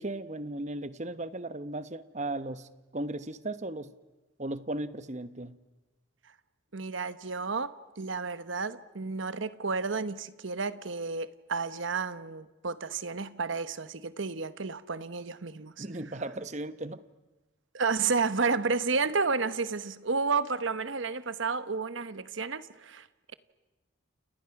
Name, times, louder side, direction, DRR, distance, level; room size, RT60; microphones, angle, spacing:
voice 1, 0.0-3.9 4.4-5.6 15.8-17.0, right 2 dB, 35° right, 0.9 m, -36 dB
voice 2, 6.7-15.9 17.7-23.1, right 4 dB, 65° right, 1.0 m, -31 dB
29.5 x 29.0 x 5.9 m
head